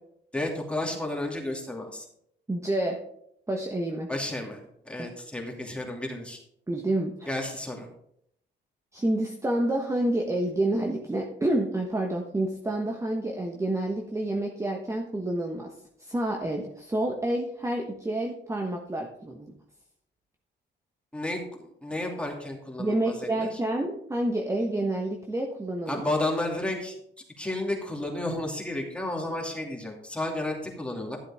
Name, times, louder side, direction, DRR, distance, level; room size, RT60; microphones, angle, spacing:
voice 1, 0.3-2.1 4.1-4.6 4.8-6.4 7.3-7.9 21.1-23.5 25.9-26.9 27.4-31.2, left 1 dB, 5° left, 0 dB, 2.7 m, -32 dB
voice 2, 2.5-3.0 3.5-4.1 5.0-5.1 6.7-7.3 8.9-15.7 16.0-19.6 22.8-26.0, right 1 dB, 15° right, 1 dB, 1.2 m, -28 dB
12.5 x 7.5 x 3.6 m, 0.73 s
cardioid pair, 90°, 20 cm